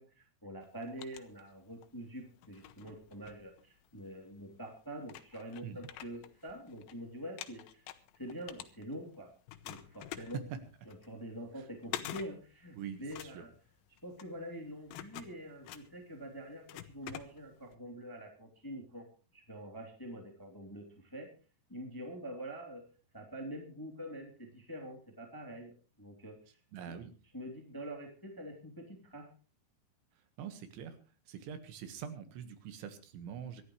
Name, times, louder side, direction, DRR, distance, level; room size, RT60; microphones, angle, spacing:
voice 1, 0.0-7.8 8.1-9.3 9.6-10.4 10.9-13.5 14.0-21.3 21.7-26.6 26.9-27.0 27.3-29.3, equal, 5° left, 2 dB, 1.9 m, -46 dB
sound 1, 0.6-1.9 2.4-4.1 4.7-4.8 5.0-6.9 7.2-9.2 9.5-17.8, left 13 dB, 85° left, 3.3 m, -47 dB
voice 2, 12.8-13.5 26.7-27.1 30.4-31.0 31.3-33.6, right 8 dB, 80° right, 9 dB, 3.9 m, -44 dB
25.5 x 12.0 x 3.2 m, 0.35 s
omnidirectional pair, 5.3 m